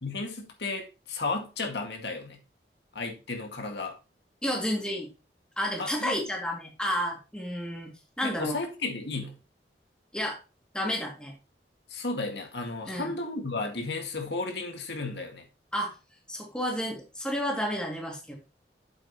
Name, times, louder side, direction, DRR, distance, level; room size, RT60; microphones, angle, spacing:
voice 1, 0.0-2.4 2.9-4.0 5.8-6.2 8.2-9.4 11.9-15.4, left 3 dB, 75° left, 3 dB, 2.0 m, -34 dB
voice 2, 4.4-5.1 5.6-7.9 8.2-8.6 10.1-10.4 10.7-11.3 12.9-13.1 15.7-16.0 16.3-18.3, equal, 5° left, -1 dB, 2.4 m, -31 dB
8.6 x 7.7 x 3.0 m, 0.31 s
head